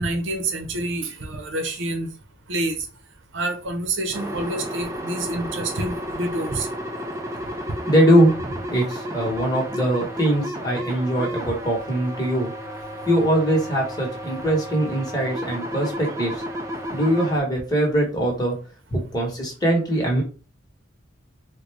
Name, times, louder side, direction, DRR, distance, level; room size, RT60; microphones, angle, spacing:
voice 1, 0.0-2.1 2.5-2.8 3.3-6.7 16.5-16.9, right 2 dB, 70° right, 0.8 m, -28 dB
sound 1, 4.1-17.4, equal, 15° right, 0.4 m, -32 dB
voice 2, 7.9-12.5 13.1-16.4 16.9-18.5 18.9-20.2, right 1 dB, 20° left, 1.1 m, -22 dB
3.8 x 2.2 x 3.3 m
head